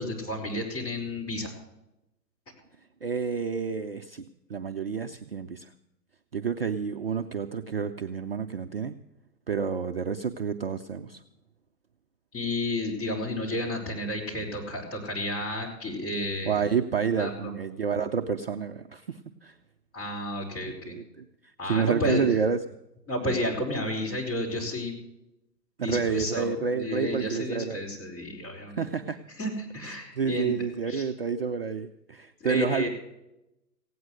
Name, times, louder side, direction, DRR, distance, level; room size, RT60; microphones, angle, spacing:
voice 1, 0.0-1.5 12.3-16.6 17.2-17.5 19.9-21.0 21.6-22.2 23.1-24.9 25.8-28.8 29.4-30.6 30.9-31.1 32.4-32.9, left 1 dB, 25° left, -2 dB, 5.0 m, -31 dB
voice 2, 3.0-4.2 4.5-5.7 6.3-8.9 9.5-11.2 16.5-19.5 20.8-21.2 21.7-22.7 25.8-27.8 28.8-29.2 29.8-32.9, right 6 dB, 40° right, 6 dB, 0.5 m, -29 dB
16.5 x 9.4 x 6.2 m, 0.90 s
hypercardioid pair, 145°, 49 cm